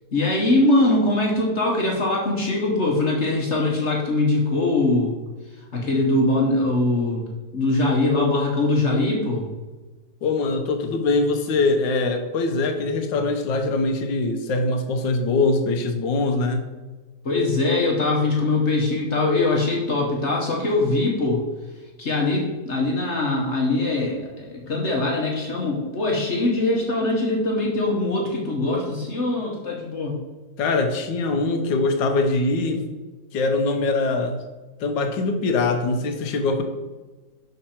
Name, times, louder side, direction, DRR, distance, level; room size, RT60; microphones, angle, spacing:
voice 1, 0.1-5.1 5.7-7.2 7.5-9.4 17.2-21.4 22.0-30.2, left 2 dB, 45° left, -2 dB, 1.2 m, -22 dB
voice 2, 10.2-16.6 30.6-32.9 33.3-34.4 34.8-36.6, left 3 dB, 85° left, 6 dB, 1.5 m, -22 dB
6.5 x 5.3 x 4.4 m, 1.3 s
omnidirectional pair, 1.9 m